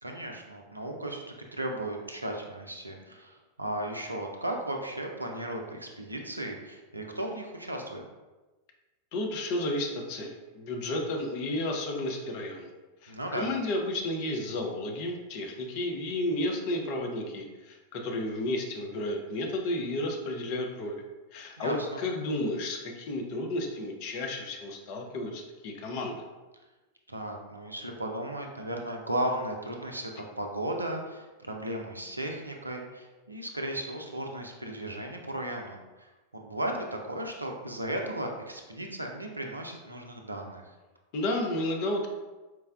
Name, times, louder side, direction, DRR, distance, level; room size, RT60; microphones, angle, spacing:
voice 1, 0.0-1.2 1.5-8.0 13.1-13.5 21.6-22.0 27.1-36.1 36.3-40.6, right 1 dB, 85° right, 2 dB, 0.4 m, -35 dB
voice 2, 9.1-12.7 13.0-21.0 21.3-26.2 41.1-42.1, left 1 dB, 45° left, 1 dB, 0.6 m, -32 dB
4.5 x 2.1 x 2.4 m, 1.2 s
figure-of-eight pair, 90°, 0 cm